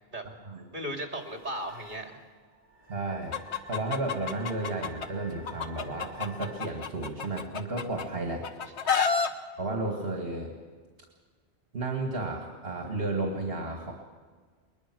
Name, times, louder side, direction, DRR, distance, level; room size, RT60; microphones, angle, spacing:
voice 1, 0.7-2.2 8.8-9.3, right 1 dB, 45° right, 3 dB, 2.9 m, -37 dB
sound 1, 1.1-6.6, right 2 dB, 20° right, 7.8 m, -52 dB
voice 2, 2.9-3.3 3.7-8.4 9.6-10.5 11.7-13.9, right 2 dB, 65° right, 1 dB, 2.2 m, -33 dB
Chicken rooster, 3.3-5.1 5.5-8.0 8.4-9.3, left 6 dB, 85° left, 1.4 m, -29 dB
21.5 x 20.5 x 6.2 m, 1.5 s
omnidirectional pair, 1.1 m